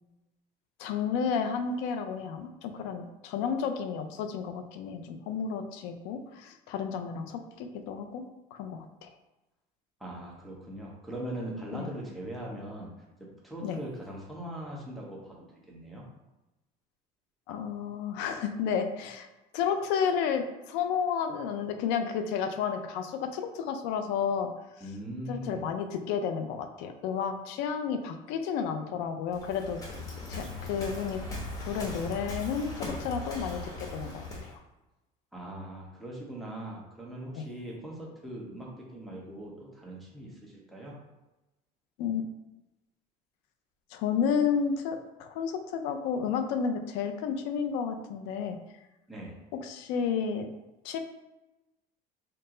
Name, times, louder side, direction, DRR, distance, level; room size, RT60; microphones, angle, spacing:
voice 1, 0.8-8.2 8.5-9.1 11.7-11.9 13.6-13.8 17.5-19.3 19.5-24.5 25.3-29.8 30.3-31.2 31.6-34.6 37.4-37.5 42.0-42.3 43.9-48.6 49.6-50.5 50.8-51.0, left 6 dB, 90° left, 6 dB, 0.5 m, -31 dB
voice 2, 10.0-12.9 13.2-16.0 24.8-25.6 35.3-41.0 49.1-49.4, right 1 dB, ahead, -4 dB, 0.9 m, -40 dB
Waves surf, 29.3-34.6, left 2 dB, 20° left, 0.9 m, -39 dB
4.4 x 2.0 x 3.7 m, 1.0 s
cardioid pair, 135°, 17 cm